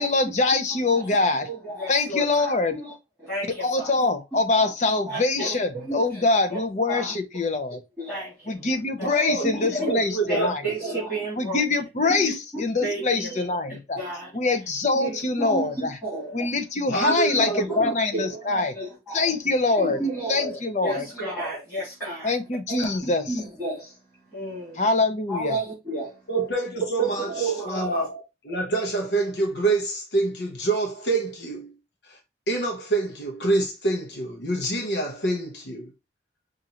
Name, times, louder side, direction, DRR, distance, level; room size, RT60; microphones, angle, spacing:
voice 1, 0.0-1.5 1.9-2.7 3.6-7.8 8.5-10.6 11.4-14.0 14.3-16.0 16.3-18.7 19.1-20.0 20.3-21.1 22.2-23.3 24.8-25.6, left 3 dB, 40° left, 0.6 m, -24 dB
voice 2, 1.5-2.9 3.2-3.9 4.3-4.7 5.0-6.6 6.9-7.1 8.0-8.7 9.0-9.1 9.5-9.9 10.3-11.6 12.2-12.3 12.8-13.4 13.7-14.3 15.0-15.7 16.0-16.5 17.3-19.4 19.7-22.4 22.7-24.8 25.3-26.3 27.0-27.9, right 2 dB, 5° left, 2.6 m, -32 dB
voice 3, 9.0-10.6 16.9-17.8 26.3-31.7 32.0-32.2 32.5-35.9, right 2 dB, 70° left, 0.8 m, -26 dB
5.3 x 2.5 x 2.8 m
head